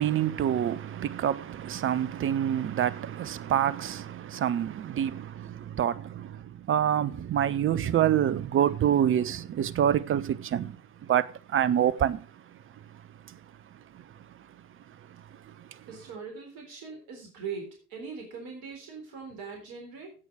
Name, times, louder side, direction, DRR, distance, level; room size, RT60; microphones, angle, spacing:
voice 1, 0.0-10.8 11.1-12.2, right 10 dB, 25° right, 0.8 m, -27 dB
voice 2, 15.9-20.1, right 5 dB, 50° right, 3.9 m, -41 dB
16.5 x 6.3 x 5.0 m
figure-of-eight pair, 70°, 46 cm